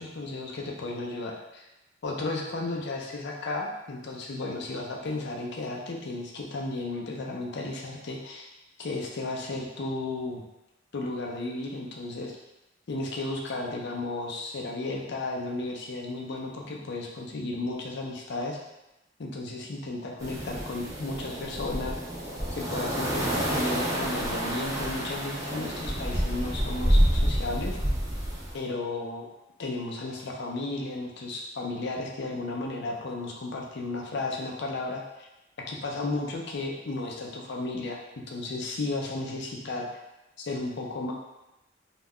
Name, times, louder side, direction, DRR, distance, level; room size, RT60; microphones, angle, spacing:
voice 1, 0.0-1.6 2.0-8.5 8.8-10.4 10.9-12.3 12.9-18.6 19.2-22.0 22.5-27.8 28.5-29.3 29.6-35.3 35.7-38.0 38.3-39.9 40.4-41.1, left 2 dB, 65° left, 0 dB, 0.5 m, -34 dB
sound 1, 20.2-28.5, equal, 15° right, 0.5 m, -28 dB
2.3 x 2.1 x 3.5 m, 0.95 s
head